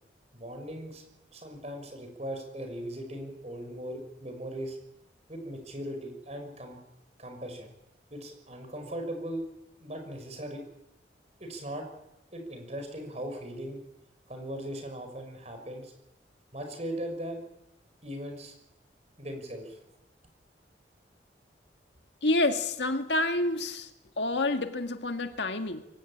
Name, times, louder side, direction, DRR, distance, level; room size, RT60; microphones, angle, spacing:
voice 1, 0.3-1.0 1.3-4.8 5.3-6.8 7.2-7.7 8.1-9.5 9.8-10.6 11.4-11.9 12.3-13.8 14.3-15.9 16.5-17.4 18.0-18.5 19.2-19.8, right 1 dB, 35° right, 6 dB, 5.5 m, -38 dB
voice 2, 22.2-23.9 24.2-25.8, left 2 dB, 80° left, 6 dB, 2.0 m, -28 dB
23.0 x 18.5 x 8.7 m, 0.88 s
head